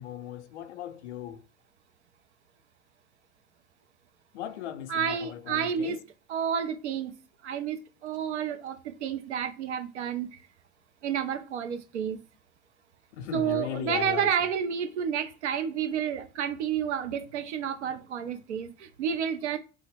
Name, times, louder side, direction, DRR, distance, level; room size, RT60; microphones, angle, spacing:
voice 1, 0.0-1.5 4.3-6.0 13.1-14.5, left 11 dB, 75° left, 0.5 m, -37 dB
voice 2, 4.9-6.0 6.3-7.1 7.4-10.4 11.0-12.2 13.3-19.6, right 8 dB, 80° right, 0.6 m, -30 dB
3.4 x 2.1 x 3.3 m
figure-of-eight pair, 70°, 34 cm